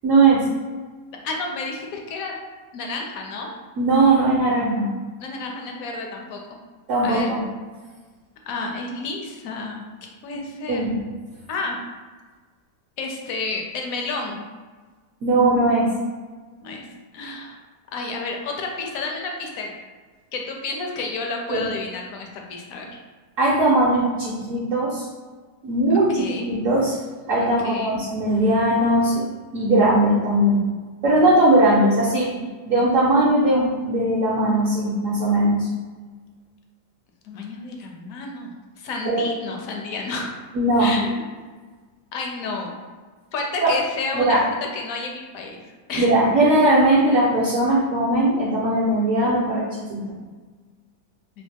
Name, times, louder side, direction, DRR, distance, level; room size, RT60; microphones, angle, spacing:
voice 1, 0.0-0.4 3.8-4.9 6.9-7.4 10.7-11.0 15.2-15.9 21.5-21.6 23.4-25.1 25.6-27.0 27.3-29.3 29.5-30.6 31.0-32.3 32.7-35.7 39.1-39.2 40.5-40.9 43.6-43.7 44.1-44.4 46.0-50.0, right 1 dB, 65° right, -6 dB, 1.0 m, -19 dB
voice 2, 1.2-2.3 2.7-3.5 5.2-6.4 7.0-7.3 8.5-9.9 10.2-10.9 11.5-11.8 13.0-14.4 16.6-16.9 17.1-17.6 17.9-19.7 20.3-23.0 25.9-26.5 27.4-28.0 37.2-38.5 38.8-40.4 40.8-41.3 42.1-42.7 43.3-44.4 44.7-45.6 45.9-46.1, left 3 dB, 70° left, 1 dB, 0.9 m, -30 dB
3.2 x 2.8 x 3.3 m, 1.4 s
omnidirectional pair, 1.7 m